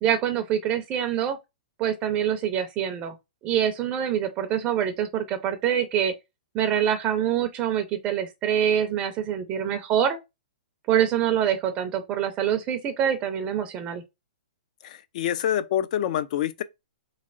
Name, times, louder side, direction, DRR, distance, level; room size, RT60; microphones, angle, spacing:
voice 1, 0.0-1.4 1.8-3.2 3.4-6.1 6.5-10.2 10.9-14.0, right 9 dB, 25° right, 0.5 m, -25 dB
voice 2, 14.8-16.6, left 10 dB, 50° left, 0.4 m, -26 dB
3.7 x 3.1 x 2.4 m
hypercardioid pair, 150°, 5 cm